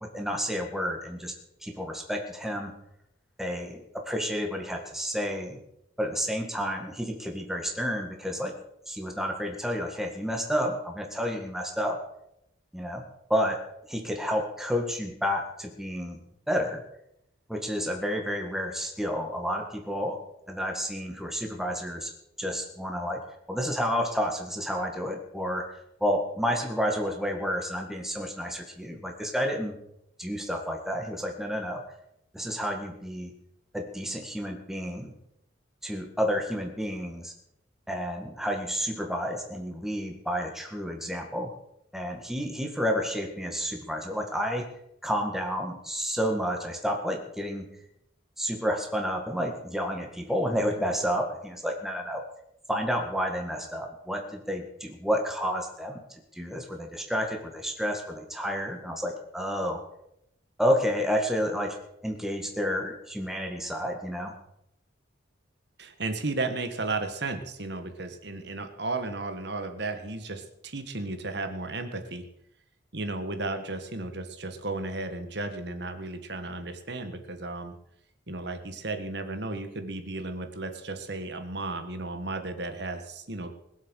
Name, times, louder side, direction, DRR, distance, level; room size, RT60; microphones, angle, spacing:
voice 1, 0.1-1.3 1.6-2.7 3.4-5.6 6.0-8.5 8.9-12.0 12.7-13.0 13.3-13.6 13.9-16.2 16.5-16.8 17.5-20.2 20.5-22.1 22.4-25.7 26.0-29.7 30.2-31.8 32.3-33.3 33.7-35.1 35.8-37.3 37.9-41.5 41.9-44.7 45.0-47.7 48.4-52.2 52.7-56.0 56.3-59.8 60.6-61.8 62.0-64.3, equal, ahead, 2 dB, 1.8 m, -30 dB
voice 2, 65.8-72.2 72.9-77.7 78.3-83.5, right 2 dB, 60° right, 8 dB, 1.6 m, -34 dB
21.5 x 7.8 x 6.4 m, 0.79 s
head